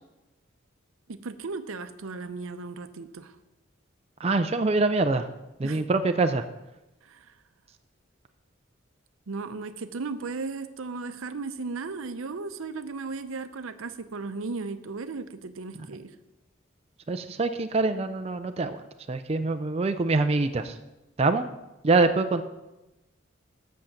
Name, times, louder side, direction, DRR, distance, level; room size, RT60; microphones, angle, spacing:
voice 1, 1.1-3.3 5.6-5.9 7.0-7.3 9.3-16.1, right 4 dB, 85° right, 11 dB, 0.6 m, -36 dB
voice 2, 4.2-5.3 5.6-6.4 17.1-18.8 19.1-20.8 21.2-21.5 21.8-22.4, right 3 dB, 30° right, 8 dB, 0.4 m, -24 dB
7.9 x 6.4 x 7.2 m, 1.0 s
head